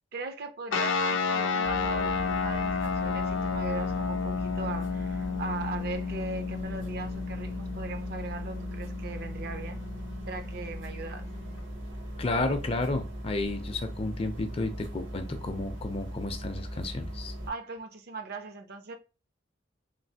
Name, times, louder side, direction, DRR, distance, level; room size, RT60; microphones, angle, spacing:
voice 1, 0.1-9.8 10.3-11.3 17.5-19.0, right 3 dB, 55° right, 0.5 m, -39 dB
sound 1, 0.7-11.6, left 5 dB, 80° left, 0.5 m, -32 dB
sound 2, 1.6-17.5, equal, 75° right, 1.1 m, -39 dB
voice 2, 12.2-17.3, left 2 dB, 30° left, 0.5 m, -32 dB
3.2 x 2.4 x 2.7 m
head